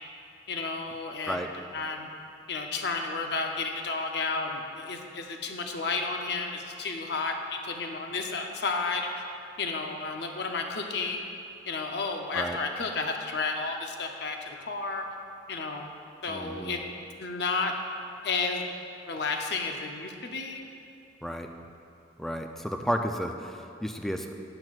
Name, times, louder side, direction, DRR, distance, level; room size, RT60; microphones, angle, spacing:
voice 1, 0.5-1.5 1.7-2.1 2.5-9.2 9.6-11.3 11.6-15.1 15.5-15.9 16.2-16.9 17.2-17.7 18.2-18.7 19.1-20.6, left 4 dB, 65° left, 3 dB, 0.7 m, -32 dB
voice 2, 16.3-16.8 21.2-21.5 22.2-24.3, equal, ahead, 4 dB, 0.4 m, -32 dB
12.0 x 8.9 x 2.4 m, 2.6 s
head